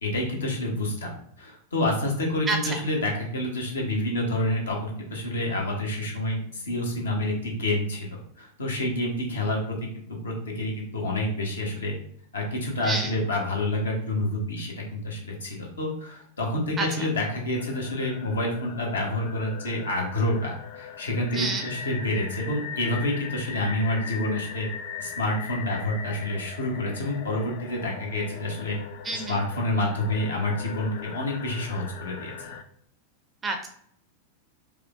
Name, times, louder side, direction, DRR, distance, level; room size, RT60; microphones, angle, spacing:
voice 1, 0.0-1.1 1.4-9.8 10.1-11.9 12.3-24.7 25.0-28.8 29.3-32.5, left 1 dB, 70° left, 0 dB, 1.1 m, -28 dB
voice 2, 2.5-2.8 12.8-13.2 16.8-17.1 21.3-21.7 29.0-29.4 33.4-33.7, right 3 dB, 20° right, 4 dB, 0.5 m, -29 dB
sound 1, 17.6-32.6, left 6 dB, 50° left, 0.4 m, -40 dB
4.8 x 2.3 x 2.5 m, 0.64 s
figure-of-eight pair, 90°, 0 cm